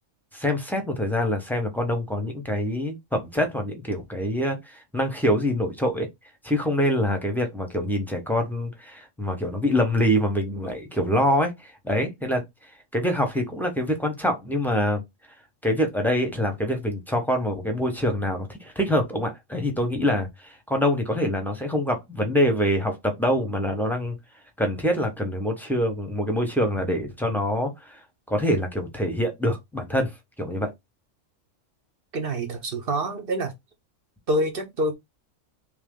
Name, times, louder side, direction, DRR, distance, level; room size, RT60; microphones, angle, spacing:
voice 1, 0.3-6.1 6.4-12.4 12.9-15.0 15.6-24.2 24.6-28.0 28.3-30.7, equal, ahead, 0.9 m, -25 dB
voice 2, 32.1-33.5 34.3-34.9, right 1 dB, 50° right, 0.9 m, -26 dB
3.3 x 3.0 x 3.7 m
omnidirectional pair, 1.3 m